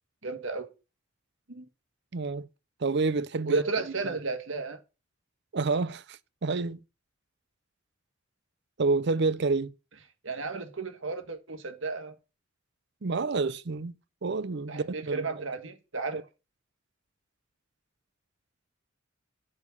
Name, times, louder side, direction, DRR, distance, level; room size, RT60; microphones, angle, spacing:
voice 1, 0.2-0.7 1.5-1.7 3.4-4.8 10.2-12.2 14.7-16.2, right 3 dB, 75° right, 1.7 m, -33 dB
voice 2, 2.1-2.5 2.8-3.6 5.5-6.8 8.8-9.7 13.0-13.9 14.2-15.3, right 3 dB, 60° right, 0.7 m, -28 dB
8.1 x 5.2 x 7.1 m
head